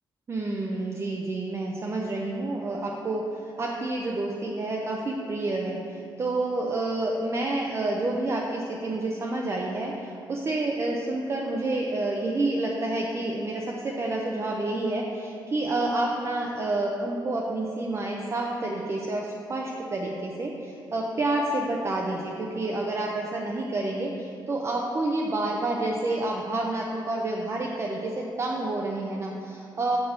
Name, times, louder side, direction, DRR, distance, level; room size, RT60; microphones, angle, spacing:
voice 1, 0.3-30.0, right 2 dB, 30° right, -1 dB, 0.5 m, -29 dB
6.7 x 5.3 x 4.3 m, 2.6 s
cardioid pair, 115°, 8 cm